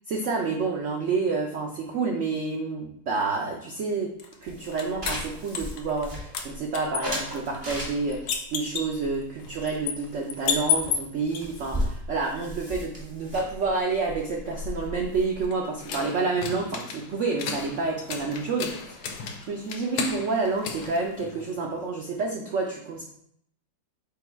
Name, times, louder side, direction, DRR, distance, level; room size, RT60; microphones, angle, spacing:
voice 1, 0.1-4.1 4.4-23.0, right 4 dB, 80° right, 0 dB, 0.6 m, -29 dB
sound 1, 4.2-6.1 6.3-11.4 14.2-21.7, left 6 dB, 70° left, 1.1 m, -33 dB
sound 2, 4.5-6.6 7.0-8.3 8.9-10.1 10.4-10.6 10.8-10.9 11.1-15.0, equal, 15° right, 1.2 m, -35 dB
5.1 x 2.3 x 4.4 m, 0.70 s
omnidirectional pair, 2.0 m